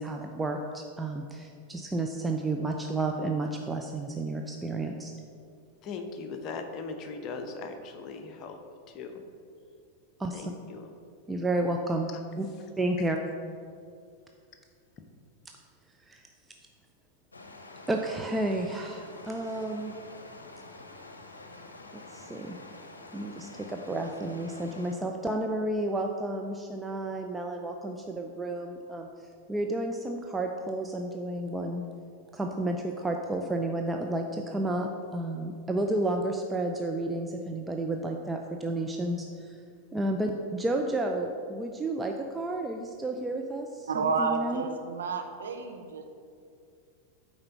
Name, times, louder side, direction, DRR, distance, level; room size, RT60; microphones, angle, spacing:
voice 1, 0.0-5.1 10.2-10.4 11.3-12.1 12.4-12.5 12.8-13.2 16.1-16.2 17.9-19.9 22.1-22.6 23.1-29.1 29.5-31.8 32.3-39.6 39.9-44.6, right 2 dB, 10° right, 2 dB, 0.5 m, -31 dB
voice 2, 5.8-8.6 8.9-9.2 10.3-10.9 12.1-12.2 13.0-13.1, left 4 dB, 35° left, 5 dB, 0.8 m, -39 dB
sound 1, 17.3-25.0, left 2 dB, 75° left, 0.7 m, -47 dB
voice 3, 43.9-46.0, right 4 dB, 65° right, 4 dB, 0.8 m, -30 dB
8.7 x 4.4 x 5.9 m, 2.3 s
figure-of-eight pair, 90°, 0 cm